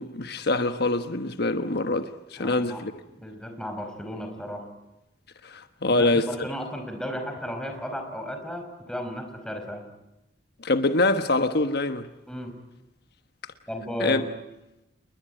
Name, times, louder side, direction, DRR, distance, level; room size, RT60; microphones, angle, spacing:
voice 1, 0.0-2.9 5.4-6.3 10.6-12.1 14.0-14.2, left 2 dB, 60° left, 1.2 m, -24 dB
voice 2, 2.4-4.7 5.9-9.9 12.3-12.5 13.7-14.3, equal, 5° left, 4.9 m, -34 dB
29.0 x 21.5 x 9.1 m
head